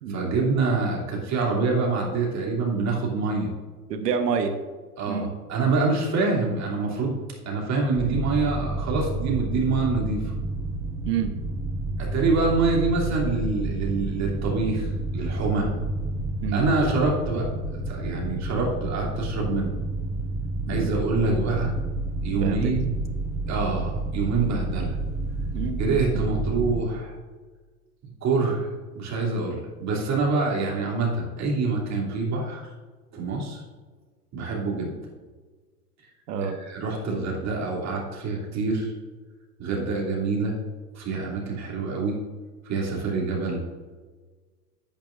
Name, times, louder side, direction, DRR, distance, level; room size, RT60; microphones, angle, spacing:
voice 1, 0.1-3.5 5.0-7.1 7.4-10.3 12.0-15.7 16.5-17.5 17.7-19.7 20.7-21.8 22.2-23.0 23.5-25.0 25.8-27.1 28.0-28.7 28.9-32.6 33.1-33.6 34.3-34.9 36.4-38.9 39.6-40.6 40.9-42.2 42.6-43.6, right 3 dB, 35° right, -2 dB, 2.9 m, -26 dB
voice 2, 3.9-4.5 5.1-5.3 11.0-11.3 16.4-16.7 20.7-20.9 22.3-22.7 25.5-25.8 26.1-26.2 36.3-36.6, right 6 dB, 75° right, 7 dB, 1.2 m, -27 dB
sound 1, 8.0-26.8, right 2 dB, 15° right, 1.0 m, -30 dB
10.0 x 8.9 x 2.5 m, 1.4 s
hypercardioid pair, 95°, 49 cm